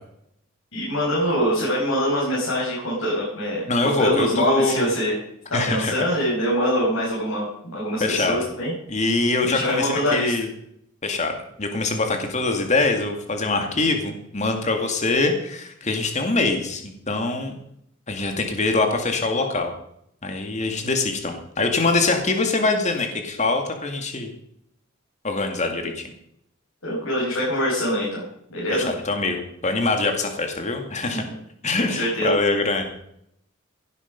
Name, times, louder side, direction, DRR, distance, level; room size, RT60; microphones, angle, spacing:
voice 1, 0.7-5.2 5.5-8.7 9.4-10.3 26.8-28.2 28.5-28.9 31.0-31.3 31.8-32.3, equal, 80° left, -7 dB, 6.4 m, -24 dB
voice 2, 3.7-4.9 5.5-6.0 8.0-8.4 8.9-10.5 11.0-11.3 11.6-17.5 18.1-19.7 20.2-24.3 25.2-26.0 28.7-31.2 31.6-32.9, left 3 dB, 35° left, 4 dB, 2.3 m, -23 dB
16.5 x 11.0 x 5.3 m, 0.74 s
head